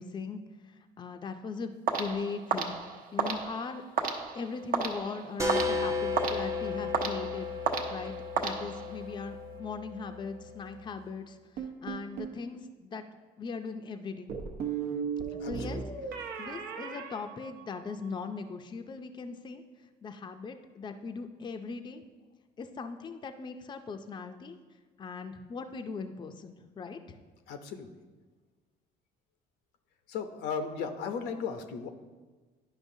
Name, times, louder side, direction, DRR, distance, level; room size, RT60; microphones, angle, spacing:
voice 1, 0.0-3.8 4.3-7.5 7.9-13.0 13.4-14.3 15.3-15.8 16.4-19.6 20.0-22.0 22.6-24.6 25.0-27.2, left 4 dB, 25° left, 7 dB, 0.5 m, -39 dB
sound 1, 1.9-9.1, right 5 dB, 55° right, 0.9 m, -34 dB
sound 2, 5.4-10.8, left 3 dB, 20° right, 0.7 m, -34 dB
sound 3, 11.6-12.4 14.3-18.1, right 6 dB, 80° right, 0.8 m, -37 dB
voice 2, 15.4-15.8 27.5-27.9 30.1-31.9, left 6 dB, 85° left, 7 dB, 0.7 m, -36 dB
10.5 x 5.4 x 2.7 m, 1.3 s
cardioid pair, 110°, 17 cm